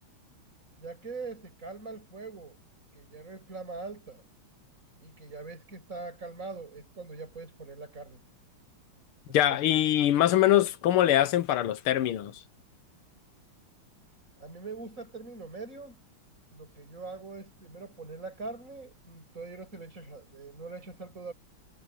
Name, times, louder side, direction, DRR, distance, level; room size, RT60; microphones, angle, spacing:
voice 1, 0.8-2.6 2.9-4.2 5.0-8.2 9.3-9.8 14.4-16.0 16.5-21.3, right 3 dB, 35° right, 7.6 m, -42 dB
voice 2, 9.3-12.4, left 12 dB, 80° left, 1.8 m, -23 dB
omnidirectional pair, 2.4 m